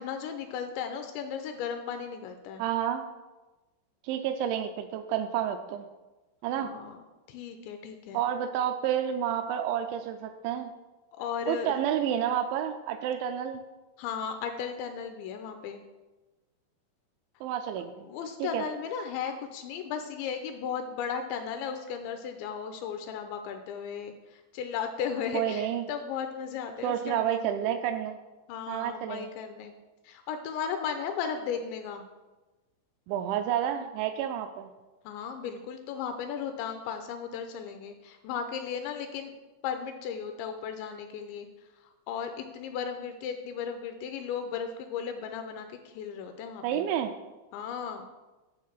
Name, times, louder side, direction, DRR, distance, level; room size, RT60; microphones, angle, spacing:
voice 1, 0.0-2.6 6.5-7.0 7.3-8.2 11.1-11.7 14.0-15.8 18.1-27.5 28.5-29.7 30.0-32.1 35.0-39.3 39.6-41.5 41.8-46.9 47.5-48.1, left 7 dB, 80° left, 7 dB, 2.7 m, -35 dB
voice 2, 2.6-3.0 4.0-5.9 6.4-6.7 8.1-10.7 11.5-13.6 17.4-18.1 18.4-18.6 25.3-25.8 26.8-28.2 28.7-29.3 33.1-34.7 46.6-47.1, right 10 dB, 85° right, 7 dB, 2.7 m, -30 dB
11.5 x 3.8 x 7.2 m, 1.1 s
omnidirectional pair, 5.6 m